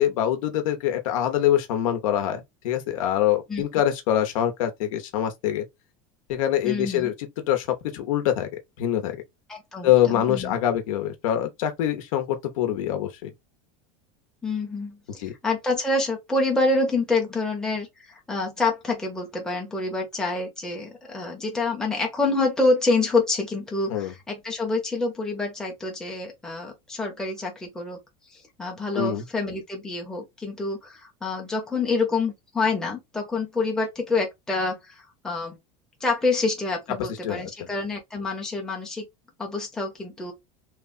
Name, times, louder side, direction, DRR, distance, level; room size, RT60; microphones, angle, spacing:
voice 1, 0.0-5.6 6.3-7.1 7.5-7.7 7.9-8.5 8.8-9.2 9.8-13.3 15.2-15.3 23.9-24.1 28.9-29.2 37.2-37.7, left 11 dB, 80° left, 0.8 m, -24 dB
voice 2, 6.6-7.1 9.5-10.6 14.4-17.9 18.3-28.0 28.3-35.6 36.0-39.0 39.4-40.3, left 3 dB, 5° left, 0.6 m, -27 dB
3.1 x 2.1 x 2.5 m
supercardioid pair, 170°, 17 cm